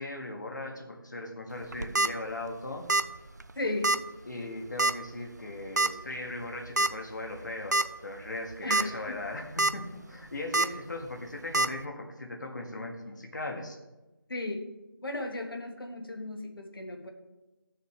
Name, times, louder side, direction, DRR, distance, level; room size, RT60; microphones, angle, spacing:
voice 1, 0.0-2.9 4.2-13.8, left 2 dB, 55° left, 2 dB, 1.6 m, -38 dB
sound 1, 1.6-2.1 2.9-3.2 3.4-3.5 3.8-4.0 4.8-5.1 5.8-5.9 6.8-6.9 7.4-7.5 7.7-7.8 8.5-8.8 9.3-9.7 10.5-10.7 11.5-11.7, right 2 dB, 50° right, 0.4 m, -25 dB
voice 2, 3.5-3.9 8.6-9.2 14.3-14.7 15.0-17.1, left 2 dB, 75° left, 3 dB, 1.5 m, -35 dB
15.0 x 6.6 x 3.3 m, 1.1 s
figure-of-eight pair, 175°, 12 cm